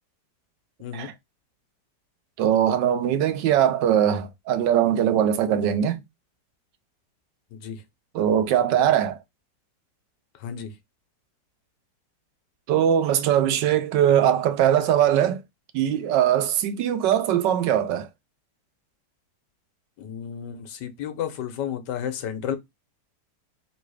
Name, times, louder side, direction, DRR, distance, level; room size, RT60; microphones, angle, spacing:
voice 1, 0.8-1.1 7.5-7.8 10.4-10.7 20.0-22.6, left 9 dB, 75° left, 1.4 m, -32 dB
voice 2, 2.4-6.0 8.1-9.2 12.7-15.4 15.7-18.1, right 10 dB, 80° right, 1.3 m, -21 dB
3.8 x 2.7 x 4.8 m
omnidirectional pair, 1.9 m